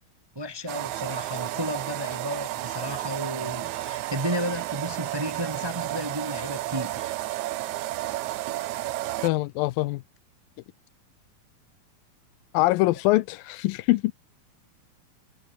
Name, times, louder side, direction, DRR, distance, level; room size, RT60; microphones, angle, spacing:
voice 1, 0.3-7.1, equal, 35° right, 0.4 m, -33 dB
sound 1, 0.7-9.3, right 16 dB, 75° right, 1.8 m, -32 dB
voice 2, 9.2-10.0 12.5-14.1, left 19 dB, 80° left, 2.3 m, -23 dB
omnidirectional pair, 4.2 m